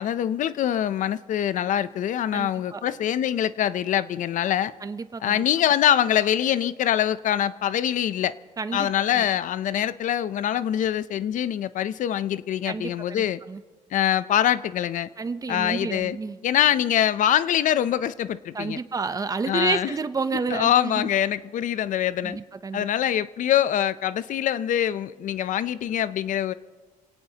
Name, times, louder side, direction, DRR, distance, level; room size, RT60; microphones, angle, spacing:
voice 1, 0.0-4.7 5.2-8.3 8.7-13.4 13.9-15.1 15.5-16.2 16.4-18.8 19.5-19.9 20.5-22.4 22.7-26.5, left 10 dB, 65° left, 16 dB, 0.5 m, -24 dB
voice 2, 2.3-2.8 4.8-5.4 8.6-9.3 12.7-13.6 15.2-16.4 18.5-21.1 22.2-22.9, right 4 dB, 25° right, 12 dB, 0.6 m, -30 dB
26.5 x 17.5 x 2.8 m, 1.4 s
cardioid pair, 130°, 14 cm